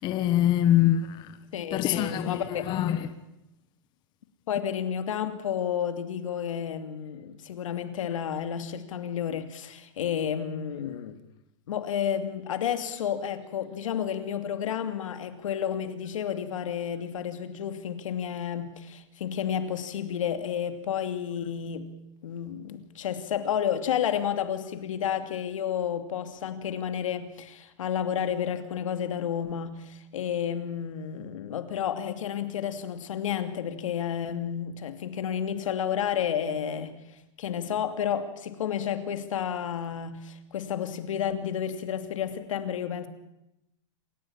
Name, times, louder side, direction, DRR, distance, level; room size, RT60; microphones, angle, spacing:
voice 1, 0.0-1.3 1.7-3.1, left 12 dB, 25° left, 1.4 m, -24 dB
voice 2, 1.5-2.6 4.5-11.2 11.7-21.9 22.2-43.1, left 9 dB, 85° left, 2.7 m, -31 dB
27.5 x 15.5 x 8.8 m
supercardioid pair, 160°, 16 cm